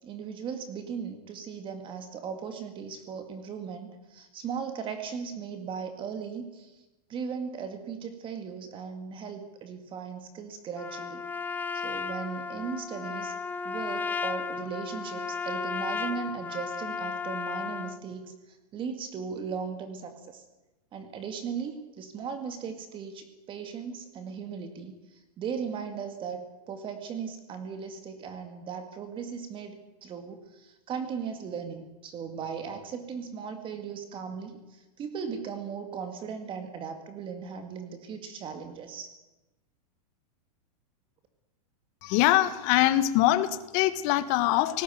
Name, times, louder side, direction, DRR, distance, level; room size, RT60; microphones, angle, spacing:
voice 1, 0.0-6.8 7.1-11.3 11.7-13.3 13.6-20.4 20.9-39.1, right 6 dB, 25° right, 7 dB, 2.2 m, -37 dB
Trumpet, 10.8-18.0, left 5 dB, 10° left, 0.9 m, -34 dB
voice 2, 42.0-44.8, left 15 dB, 40° left, 12 dB, 1.6 m, -23 dB
19.0 x 17.0 x 9.4 m, 1.0 s
supercardioid pair, 145°, 20 cm